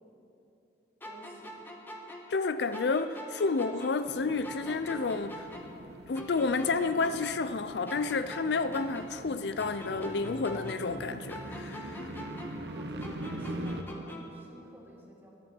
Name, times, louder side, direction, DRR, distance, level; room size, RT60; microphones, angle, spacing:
sound 1, 1.0-4.2 4.4-7.6 7.9-11.0 11.3-14.4, equal, 10° left, 1.3 m, -45 dB
voice 1, 1.0-1.6 12.7-15.3, right 1 dB, 15° right, 2.6 m, -52 dB
voice 2, 2.3-5.7 6.1-12.1, left 4 dB, 70° left, 0.4 m, -30 dB
sound 2, 4.1-13.8, right 1 dB, 65° right, 1.0 m, -42 dB
20.0 x 11.5 x 4.5 m
head